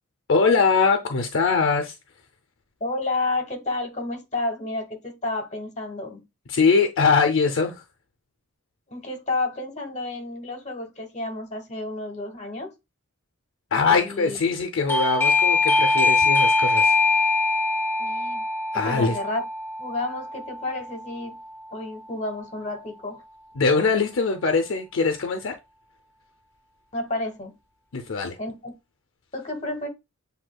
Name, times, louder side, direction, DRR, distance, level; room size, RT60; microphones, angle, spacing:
voice 1, 0.3-1.9 6.5-7.8 13.7-16.9 18.7-19.2 23.5-25.6 27.9-28.4, left 4 dB, 65° left, 0.6 m, -22 dB
voice 2, 2.8-6.2 8.9-12.7 13.9-14.4 18.0-18.4 18.8-19.4 19.8-21.4 21.7-23.2 26.9-27.5 28.4-28.7 29.3-29.9, left 2 dB, 35° left, 1.1 m, -31 dB
Doorbell, 14.9-21.4, left 3 dB, 10° left, 0.4 m, -22 dB
7.8 x 2.7 x 2.2 m
head